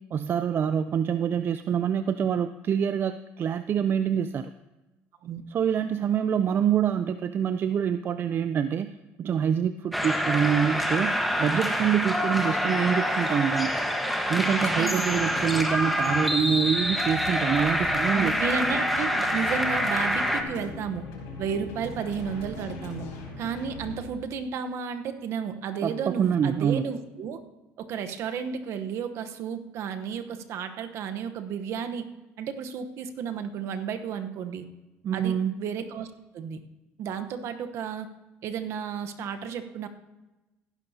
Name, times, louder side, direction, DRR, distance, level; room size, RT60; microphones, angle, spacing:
voice 1, 0.1-4.5 5.5-8.9 9.2-11.1 11.4-13.7 14.3-18.3 25.8-26.8 35.0-35.6, right 8 dB, 45° right, 11 dB, 0.4 m, -26 dB
sound 1, 9.9-20.4, equal, ahead, 1.3 m, -26 dB
voice 2, 14.8-15.1 18.1-21.1 21.4-23.1 23.4-27.4 27.8-32.1 32.4-34.7 35.1-36.1 36.3-36.6 37.0-38.1 38.4-39.9, right 6 dB, 65° right, 8 dB, 1.0 m, -32 dB
sound 2, 15.0-24.0, left 3 dB, 85° left, 4.9 m, -40 dB
18.0 x 10.5 x 2.8 m, 1.0 s
supercardioid pair, 90°, 5 cm